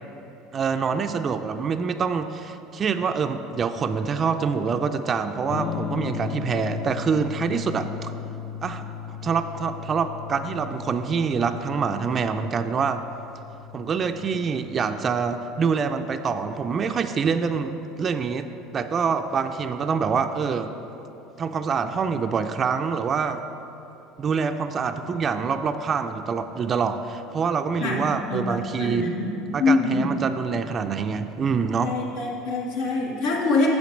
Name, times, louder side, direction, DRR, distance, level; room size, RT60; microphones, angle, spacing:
voice 1, 0.5-8.1 8.6-13.0 13.7-18.5 18.7-20.7 21.4-23.4 24.2-29.1 29.5-31.9, right 5 dB, 30° right, 8 dB, 0.3 m, -26 dB
Electric guitar / Strum, 5.5-15.2, left 8 dB, 45° left, 0.3 m, -36 dB
voice 2, 28.3-29.3 29.6-30.1 31.8-33.7, left 3 dB, 85° left, -3 dB, 1.5 m, -24 dB
8.3 x 6.5 x 5.2 m, 3.0 s
supercardioid pair, 125°, 0 cm